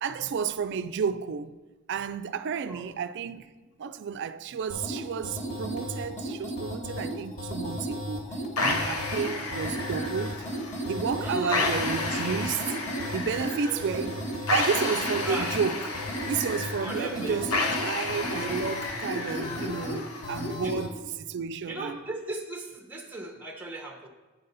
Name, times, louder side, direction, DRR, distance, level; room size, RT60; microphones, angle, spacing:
voice 1, 0.0-1.5 1.9-10.5 10.8-12.8 13.1-16.0 16.3-22.0, right 6 dB, 50° right, 0.3 m, -32 dB
sound 1, 4.7-20.9, equal, 30° left, 1.2 m, -35 dB
sound 2, 8.6-20.6, left 3 dB, 80° left, 0.9 m, -32 dB
voice 2, 11.2-11.8 13.7-13.9 15.2-15.5 16.8-17.4 20.6-20.8 21.7-24.1, right 2 dB, 10° right, 0.7 m, -36 dB
9.3 x 4.0 x 5.4 m
head